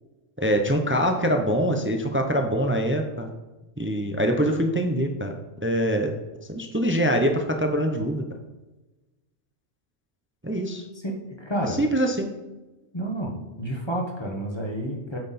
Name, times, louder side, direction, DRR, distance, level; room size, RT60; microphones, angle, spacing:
voice 1, 0.4-3.3 3.8-5.3 5.6-6.2 6.5-8.3 10.4-10.8 11.8-12.3, equal, 15° right, 4 dB, 0.5 m, -24 dB
voice 2, 10.9-11.8 12.9-15.2, right 1 dB, 25° left, 0 dB, 1.2 m, -30 dB
9.0 x 5.7 x 4.2 m, 1.1 s
omnidirectional pair, 1.2 m